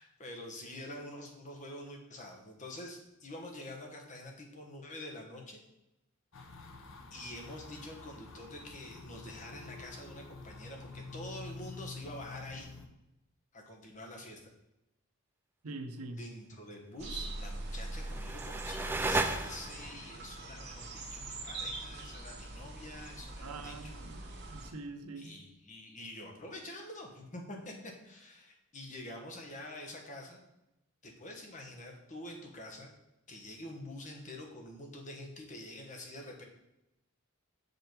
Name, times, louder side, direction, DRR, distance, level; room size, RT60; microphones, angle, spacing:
voice 1, 0.0-5.6 7.1-12.7 13.5-14.5 16.2-23.9 24.6-24.7 25.2-30.4 31.0-32.9 33.3-36.4, left 1 dB, 35° left, 1 dB, 1.2 m, -46 dB
sound 1, 6.3-12.9, left 3 dB, 65° left, 0.8 m, -48 dB
voice 2, 15.6-16.2 23.4-25.4, right 3 dB, 90° right, 8 dB, 0.8 m, -44 dB
sound 2, 17.0-24.7, right 2 dB, 50° right, 1.1 m, -43 dB
sound 3, 17.6-20.0, right 2 dB, 10° right, 0.3 m, -35 dB
6.6 x 5.2 x 4.6 m, 0.89 s
head